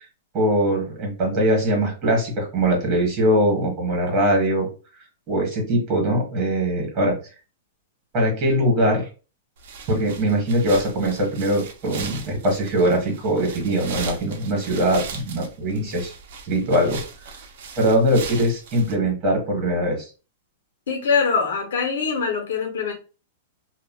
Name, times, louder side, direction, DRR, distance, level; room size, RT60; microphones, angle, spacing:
voice 1, 0.3-4.7 5.3-7.2 8.1-9.0 9.9-16.1 16.5-17.0 17.8-20.0, right 1 dB, 25° right, 1.5 m, -21 dB
sound 1, 9.6-18.9, right 5 dB, 50° right, 0.6 m, -38 dB
voice 2, 20.9-22.9, left 5 dB, 85° left, 0.9 m, -23 dB
3.1 x 2.4 x 2.2 m
supercardioid pair, 170°, 0 cm